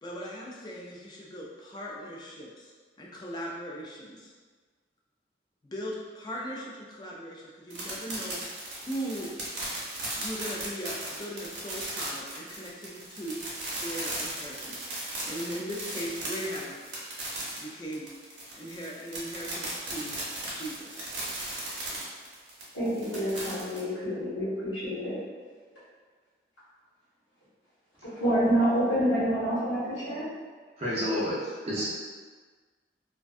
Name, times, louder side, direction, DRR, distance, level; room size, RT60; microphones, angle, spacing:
voice 1, 0.0-2.7 3.0-4.3 5.6-9.3 10.2-13.5 13.8-14.9 15.2-16.7 17.6-18.1 18.5-20.2 20.5-21.1, equal, 25° left, -3 dB, 0.3 m, -38 dB
sound 1, 7.7-23.8, right 2 dB, 80° right, 0.7 m, -37 dB
voice 2, 22.7-25.2 28.0-30.3, equal, 90° left, -9 dB, 1.1 m, -27 dB
voice 3, 30.8-31.9, equal, 35° right, -8 dB, 0.5 m, -30 dB
2.5 x 2.2 x 2.4 m, 1.5 s
head